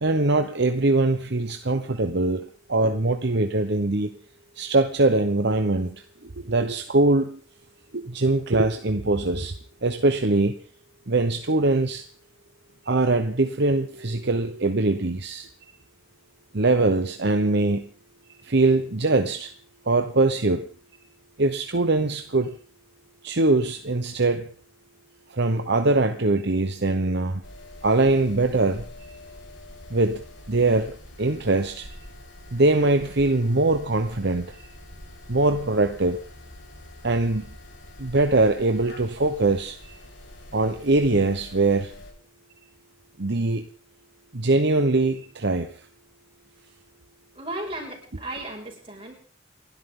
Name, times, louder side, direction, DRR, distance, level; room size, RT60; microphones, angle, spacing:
voice 1, 0.0-2.4 2.7-4.2 4.6-6.0 6.2-7.4 7.9-9.5 9.8-10.6 11.1-12.0 12.9-15.5 16.5-17.8 18.4-19.5 19.9-20.7 21.4-22.6 23.2-24.5 25.3-27.4 27.8-28.9 29.9-31.9 32.5-34.6 35.3-36.2 37.0-37.4 38.0-39.9 40.5-41.9 43.2-43.7 44.3-45.7, right 2 dB, 60° right, 6 dB, 1.1 m, -22 dB
sound 1, 27.4-42.1, left 1 dB, 70° left, 4.9 m, -45 dB
voice 2, 47.3-49.2, right 1 dB, 30° right, 0 dB, 6.0 m, -35 dB
29.0 x 12.0 x 3.9 m, 0.41 s
head